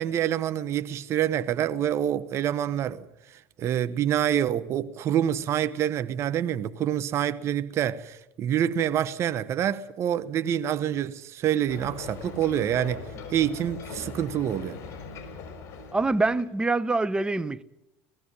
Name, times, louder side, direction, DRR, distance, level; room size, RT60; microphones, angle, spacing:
voice 1, 0.0-3.1 3.6-13.0 13.3-14.8, right 10 dB, 45° right, 1.1 m, -26 dB
Ocean, 11.7-16.6, left 5 dB, 50° left, 4.9 m, -41 dB
voice 2, 15.9-17.6, right 3 dB, 15° right, 0.9 m, -25 dB
18.5 x 15.0 x 9.9 m
supercardioid pair, 100°, 6 cm